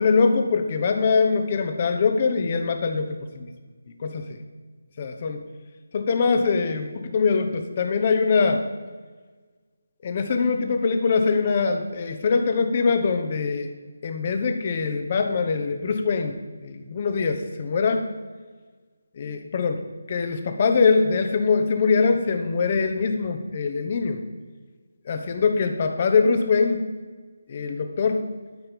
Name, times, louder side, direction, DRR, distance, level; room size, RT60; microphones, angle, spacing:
voice 1, 0.0-3.5 4.0-4.4 5.0-5.4 5.9-8.6 10.0-13.7 14.0-16.4 16.6-18.1 19.2-19.8 20.1-24.2 25.1-26.9 27.5-28.3, left 4 dB, 35° left, 7 dB, 1.0 m, -23 dB
12.5 x 5.8 x 5.3 m, 1.4 s
figure-of-eight pair, 155°, 0 cm